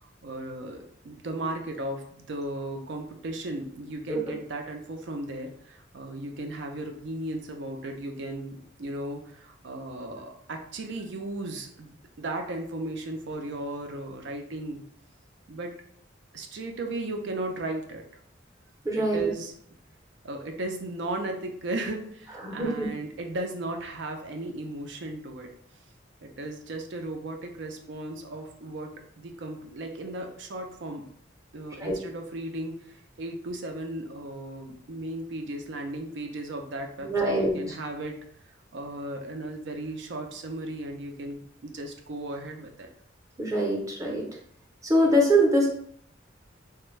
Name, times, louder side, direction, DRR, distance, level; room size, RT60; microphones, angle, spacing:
voice 1, 0.0-14.8 15.5-15.7 16.3-18.0 18.9-19.5 20.2-25.5 26.2-28.9 29.2-31.0 31.5-38.2 38.7-42.9, right 1 dB, 65° right, 4 dB, 0.5 m, -36 dB
voice 2, 18.8-19.3 22.4-22.9 31.8-31.9 37.0-37.6 43.4-44.3 44.8-45.7, right 1 dB, 15° right, -1 dB, 0.6 m, -23 dB
3.3 x 2.1 x 3.1 m, 0.64 s
head